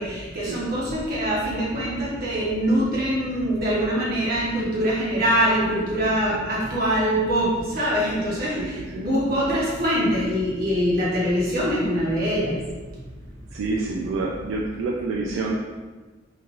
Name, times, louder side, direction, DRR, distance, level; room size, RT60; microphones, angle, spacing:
voice 1, 0.0-12.5, equal, 50° right, -6 dB, 0.9 m, -23 dB
voice 2, 8.5-9.0 13.5-15.6, right 3 dB, 85° right, -2 dB, 0.3 m, -28 dB
3.1 x 2.5 x 2.4 m, 1.3 s
head